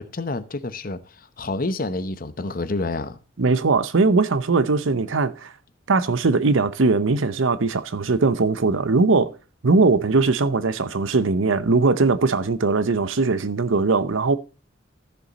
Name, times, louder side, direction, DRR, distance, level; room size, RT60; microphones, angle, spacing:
voice 1, 0.0-3.2, left 2 dB, 45° left, 0.8 m, -29 dB
voice 2, 3.4-5.5 5.9-9.3 9.6-14.4, right 3 dB, 75° right, 0.8 m, -20 dB
14.0 x 6.9 x 4.1 m
head